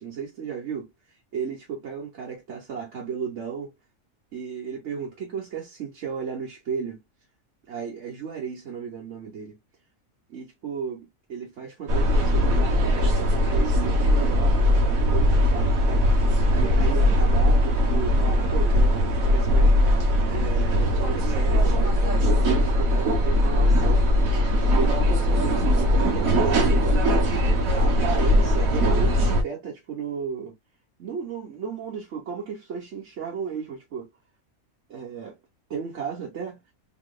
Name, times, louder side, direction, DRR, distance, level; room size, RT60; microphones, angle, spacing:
voice 1, 0.0-3.7 4.3-7.0 7.7-9.6 10.3-14.6 15.0-16.1 16.5-18.9 19.2-19.7 20.3-24.2 24.7-30.6 31.0-34.1 34.9-35.4 35.7-36.6, right 6 dB, 60° right, 1.2 m, -34 dB
sound 1, 11.9-29.4, equal, 80° right, 1.5 m, -20 dB
4.0 x 2.9 x 2.2 m
omnidirectional pair, 1.4 m